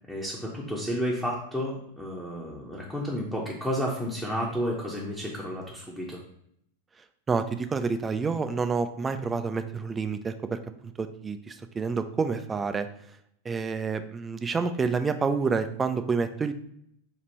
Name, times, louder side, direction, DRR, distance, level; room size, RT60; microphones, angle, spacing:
voice 1, 0.1-6.2, equal, 5° left, -5 dB, 0.8 m, -31 dB
voice 2, 7.3-12.9 13.4-16.5, right 5 dB, 15° right, 9 dB, 0.4 m, -28 dB
4.9 x 2.5 x 4.2 m, 0.72 s
figure-of-eight pair, 90°, 0 cm